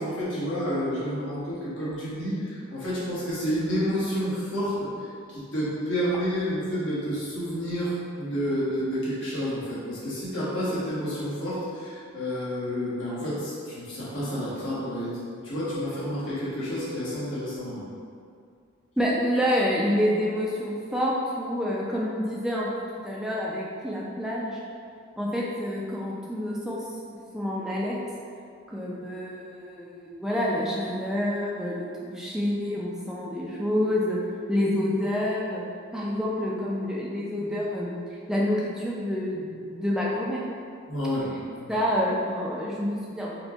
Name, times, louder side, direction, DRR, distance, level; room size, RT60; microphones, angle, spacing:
voice 1, 0.0-4.9 5.3-17.8 40.9-41.8, equal, 65° left, -9 dB, 1.1 m, -30 dB
voice 2, 19.0-24.6 25.2-26.8 27.3-28.0 28.7-34.2 34.5-35.6 35.9-38.0 38.3-40.4 41.7-43.3, equal, 5° right, -5 dB, 0.3 m, -28 dB
4.2 x 2.2 x 2.9 m, 2.3 s
head